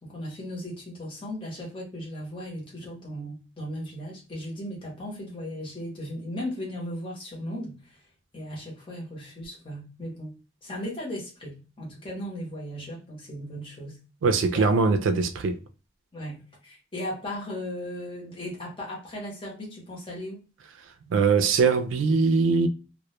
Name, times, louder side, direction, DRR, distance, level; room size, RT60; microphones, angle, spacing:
voice 1, 0.0-8.1 8.3-14.0 14.5-14.7 16.1-20.4, equal, 25° left, 0.7 m, -37 dB
voice 2, 14.2-15.6 21.1-22.7, right 4 dB, 90° right, 0.3 m, -22 dB
2.0 x 2.0 x 2.9 m
head